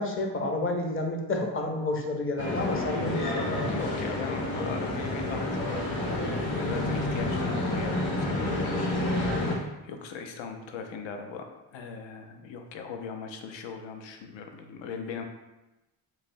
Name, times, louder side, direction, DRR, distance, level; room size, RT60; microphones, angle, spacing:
voice 1, 0.0-3.7, left 2 dB, 25° left, 3 dB, 0.6 m, -30 dB
sound 1, 2.4-9.6, left 2 dB, 50° left, 1.1 m, -29 dB
voice 2, 3.6-9.0 9.4-15.2, left 5 dB, 70° left, 5 dB, 0.6 m, -39 dB
3.2 x 3.1 x 2.6 m, 1.0 s
supercardioid pair, 60°, 48 cm